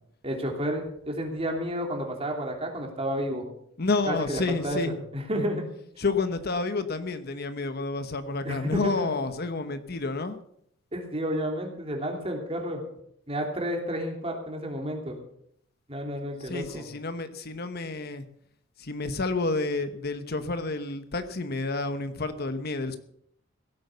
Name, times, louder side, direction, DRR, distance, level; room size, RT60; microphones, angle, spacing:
voice 1, 0.2-3.4 4.1-4.8 5.1-5.6 8.4-9.2 10.9-12.8 13.3-15.2 15.9-16.9, equal, 30° right, 2 dB, 3.1 m, -31 dB
voice 2, 3.8-5.0 6.0-10.4 16.4-18.2 18.8-23.0, left 3 dB, 50° left, 10 dB, 1.0 m, -30 dB
16.5 x 8.7 x 6.8 m, 0.70 s
head